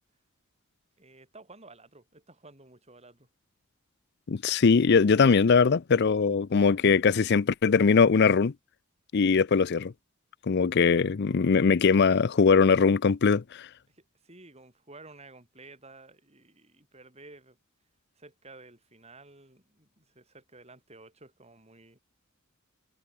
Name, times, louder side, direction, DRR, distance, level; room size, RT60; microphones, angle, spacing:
voice 1, 1.0-3.3 13.9-17.6 18.2-22.0, right 2 dB, 30° right, 7.2 m, -52 dB
voice 2, 4.3-8.5 9.1-9.9 10.5-13.7, left 5 dB, 50° left, 0.5 m, -21 dB
head